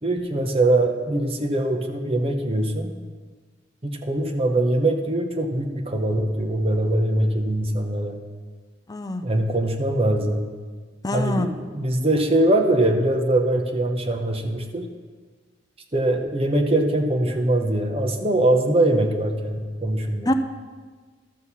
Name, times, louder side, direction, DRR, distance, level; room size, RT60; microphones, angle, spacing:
voice 1, 0.0-2.9 3.8-8.2 9.2-10.4 11.1-14.9 15.9-20.3, right 1 dB, 30° right, 4 dB, 0.9 m, -22 dB
voice 2, 8.9-9.2 11.0-11.5 20.3-20.4, left 1 dB, 20° left, 8 dB, 0.5 m, -24 dB
12.5 x 6.5 x 5.7 m, 1.5 s
head